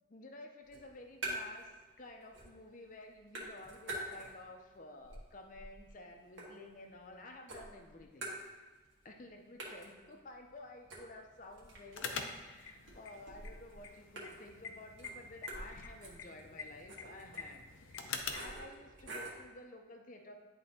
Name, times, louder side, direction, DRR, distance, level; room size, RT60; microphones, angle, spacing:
voice 1, 0.1-8.7 9.0-20.3, left 2 dB, 40° left, 3 dB, 0.6 m, -53 dB
sound 1, 0.6-1.7 2.0-2.7 3.0-4.6 5.0-7.1 7.5-8.9 9.2-9.3 9.6-19.5, right 1 dB, 75° right, 1.5 m, -47 dB
sound 2, 11.9-18.6, left 5 dB, 80° left, 0.6 m, -45 dB
10.5 x 3.8 x 2.8 m, 1.3 s
head